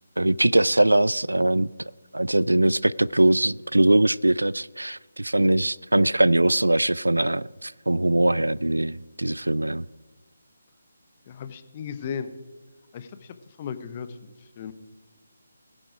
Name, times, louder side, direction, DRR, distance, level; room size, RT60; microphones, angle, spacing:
voice 1, 0.2-1.7 2.1-9.8, right 1 dB, 80° right, 0.3 m, -21 dB
voice 2, 11.3-12.3 12.9-14.7, left 7 dB, 30° left, 0.9 m, -36 dB
21.0 x 7.7 x 5.0 m
figure-of-eight pair, 150°, 0 cm